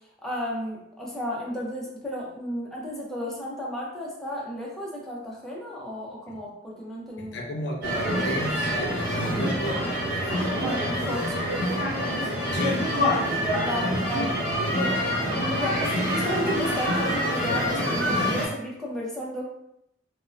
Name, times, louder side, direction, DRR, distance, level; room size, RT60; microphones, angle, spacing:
voice 1, 0.2-7.4 10.3-11.5 13.6-14.4 14.7-19.4, equal, ahead, -5 dB, 0.5 m, -33 dB
voice 2, 7.2-9.9 12.5-12.9, equal, 65° left, 0 dB, 0.5 m, -33 dB
sound 1, 7.8-18.5, equal, 50° right, 1.0 m, -26 dB
2.5 x 2.0 x 2.4 m, 0.77 s
head